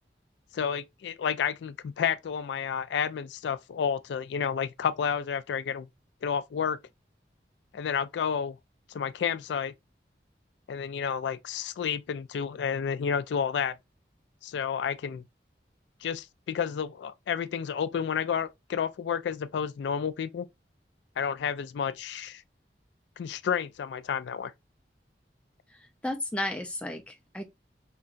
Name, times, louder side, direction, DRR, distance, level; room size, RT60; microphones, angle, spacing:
voice 1, 0.5-5.9 6.2-6.8 7.7-8.6 8.9-9.7 10.7-13.8 14.4-15.2 16.0-20.5 21.2-22.4 23.2-24.5, left 7 dB, 85° left, 0.3 m, -30 dB
voice 2, 25.7-27.4, left 1 dB, 5° left, 0.5 m, -34 dB
3.8 x 2.2 x 2.5 m
head